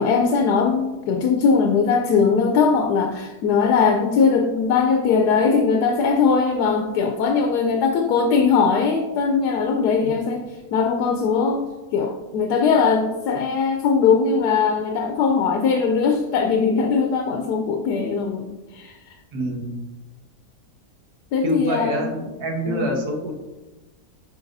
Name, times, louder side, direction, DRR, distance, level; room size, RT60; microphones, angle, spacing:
voice 1, 0.0-11.7 11.9-19.1 21.3-22.0 22.6-23.0, left 5 dB, 85° left, 4 dB, 1.2 m, -20 dB
voice 2, 19.3-19.7 21.4-23.3, equal, 75° right, 2 dB, 1.6 m, -26 dB
8.7 x 5.2 x 2.6 m, 1.1 s
omnidirectional pair, 1.7 m